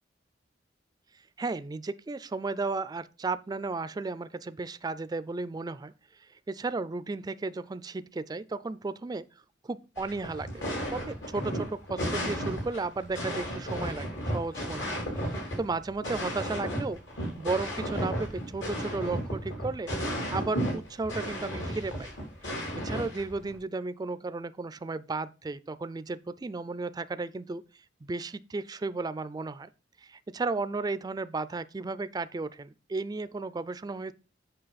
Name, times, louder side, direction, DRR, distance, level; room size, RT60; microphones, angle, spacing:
voice 1, 1.4-5.9 6.5-9.3 9.6-10.6 10.9-14.1 14.3-15.0 15.3-17.0 17.4-19.9 20.3-22.1 22.8-27.6 28.0-29.7 30.0-34.1, right 3 dB, 20° right, 0.3 m, -34 dB
sound 1, 10.0-23.5, equal, 80° left, 3.4 m, -34 dB
7.8 x 5.6 x 4.0 m
head